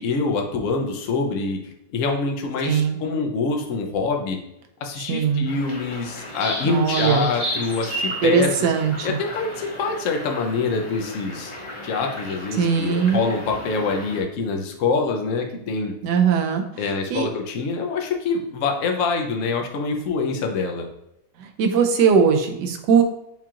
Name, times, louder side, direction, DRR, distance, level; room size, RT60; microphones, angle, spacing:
voice 1, 0.0-1.6 1.9-4.4 4.8-8.7 9.0-11.5 11.8-15.9 16.8-20.9, left 4 dB, 60° left, 2 dB, 0.9 m, -25 dB
voice 2, 2.6-3.0 5.1-5.5 6.6-7.3 8.2-9.2 12.5-13.3 16.0-16.6 17.1-17.3 21.4-23.0, right 6 dB, 85° right, 5 dB, 1.3 m, -20 dB
sound 1, 5.5-14.2, equal, 25° left, 0.8 m, -33 dB
7.3 x 2.4 x 2.9 m, 0.82 s
omnidirectional pair, 1.8 m